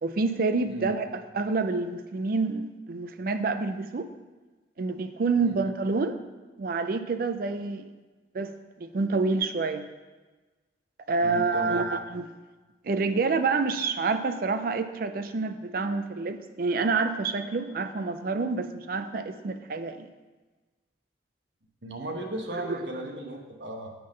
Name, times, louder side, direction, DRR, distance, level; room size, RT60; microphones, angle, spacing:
voice 1, 0.0-4.1 4.8-6.2 6.6-7.9 8.3-8.5 8.8-9.9 11.1-12.2 12.8-20.1 22.5-22.8, right 4 dB, 50° right, 9 dB, 0.4 m, -28 dB
voice 2, 11.2-11.8 21.8-23.9, right 1 dB, 80° right, 2 dB, 1.1 m, -36 dB
8.0 x 3.7 x 6.4 m, 1.3 s
head